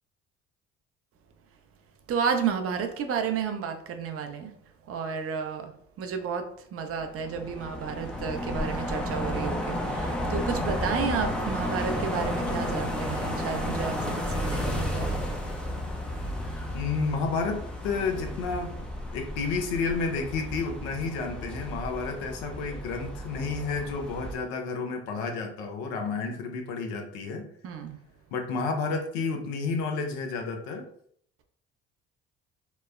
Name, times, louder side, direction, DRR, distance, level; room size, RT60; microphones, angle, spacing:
voice 1, 2.1-4.5 4.9-5.7 6.0-15.1 27.6-28.0, right 6 dB, 45° right, 6 dB, 0.5 m, -31 dB
sound 1, 7.0-24.3, left 1 dB, 5° left, 0.5 m, -32 dB
voice 2, 16.7-18.9 19.1-27.5 28.3-30.8, left 4 dB, 80° left, 3 dB, 0.6 m, -31 dB
3.0 x 2.0 x 2.3 m, 0.64 s
hypercardioid pair, 65°, 32 cm